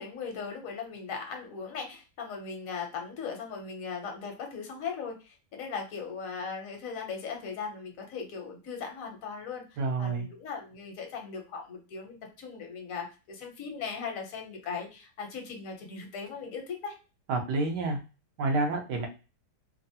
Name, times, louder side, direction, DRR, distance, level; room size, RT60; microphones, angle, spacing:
voice 1, 0.0-16.9, left 5 dB, 60° left, 3 dB, 1.1 m, -38 dB
voice 2, 9.8-10.3 17.3-18.0 18.4-19.1, right 3 dB, 80° right, 3 dB, 1.3 m, -28 dB
3.5 x 2.0 x 2.7 m, 0.32 s
omnidirectional pair, 1.8 m